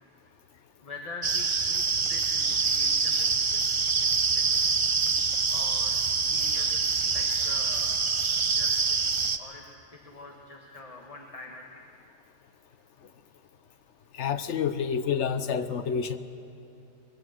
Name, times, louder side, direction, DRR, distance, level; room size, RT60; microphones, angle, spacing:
voice 1, 0.8-4.5 5.5-6.8 7.0-9.0 9.4-11.8, left 2 dB, 30° left, 1 dB, 1.5 m, -45 dB
sound 1, 1.2-9.4, right 5 dB, 35° right, 0.5 m, -25 dB
voice 2, 14.1-16.2, left 7 dB, 75° left, 11 dB, 1.2 m, -28 dB
22.5 x 17.0 x 7.8 m, 2.9 s
omnidirectional pair, 1.2 m